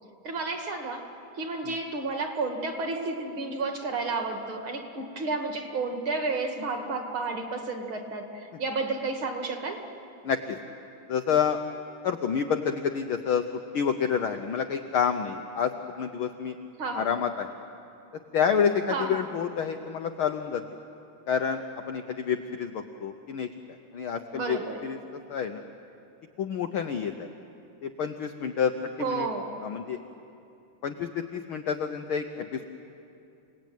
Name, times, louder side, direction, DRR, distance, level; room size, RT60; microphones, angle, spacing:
voice 1, 0.2-1.1 1.3-9.8 16.8-17.1 18.9-19.3 24.3-24.8 29.0-29.6, right 3 dB, 45° right, 4 dB, 2.4 m, -31 dB
voice 2, 10.2-10.6 11.1-11.6 12.0-13.4 13.7-16.6 16.9-17.5 18.3-20.6 21.3-23.5 23.9-25.0 25.3-25.6 26.4-27.3 27.8-28.7 29.0-29.3 29.6-30.0 30.8-32.6, left 7 dB, 85° left, 6 dB, 1.1 m, -28 dB
29.0 x 18.5 x 9.3 m, 2.7 s
omnidirectional pair, 3.6 m